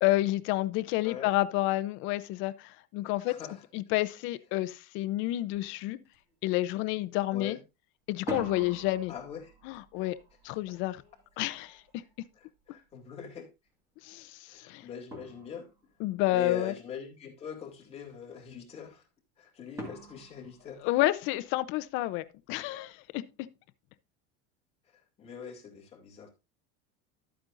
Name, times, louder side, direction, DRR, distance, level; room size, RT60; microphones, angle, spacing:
voice 1, 0.0-3.4 3.7-6.0 6.4-7.6 8.1-9.1 9.6-10.2 10.4-11.0 11.4-12.0 14.0-14.9 16.0-16.7 20.8-23.5, left 17 dB, 40° left, 0.6 m, -30 dB
voice 2, 3.3-3.6 7.3-7.6 9.1-9.5 12.7-13.5 14.5-15.7 16.3-19.0 19.4-20.9 24.9-26.3, left 7 dB, 20° left, 2.4 m, -43 dB
sound 1, 5.5-5.7 6.1-6.6 8.1-12.9 14.6-14.7 15.1-16.0 19.8-21.5, right 2 dB, 10° right, 1.9 m, -45 dB
12.0 x 8.6 x 2.5 m
cardioid pair, 175°, 32 cm